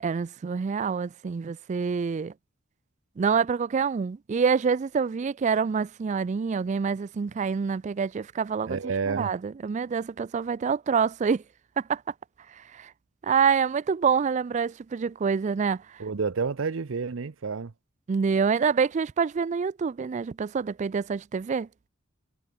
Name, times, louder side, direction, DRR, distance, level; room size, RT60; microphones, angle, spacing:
voice 1, 0.0-2.3 3.2-8.8 9.1-11.4 11.8-12.0 12.7-12.9 13.2-15.8 18.1-21.7, right 6 dB, 35° right, 0.3 m, -26 dB
voice 2, 8.6-9.3 16.0-17.7, right 5 dB, 75° right, 0.6 m, -29 dB
head